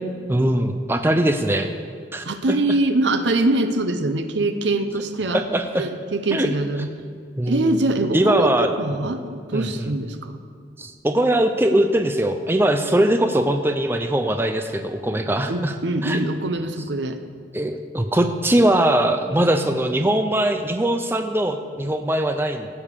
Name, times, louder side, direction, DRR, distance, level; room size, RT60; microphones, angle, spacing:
voice 1, 0.3-1.7 2.1-2.6 5.3-5.9 6.3-6.5 7.4-7.7 8.1-8.7 9.0-9.1 9.5-9.9 10.8-15.7 16.0-16.2 17.5-22.7, right 1 dB, 10° right, 7 dB, 0.5 m, -21 dB
voice 2, 2.3-5.4 5.8-6.9 7.5-10.4 15.5-17.2, right 2 dB, 75° right, 8 dB, 0.8 m, -23 dB
15.5 x 5.3 x 6.7 m, 2.2 s
head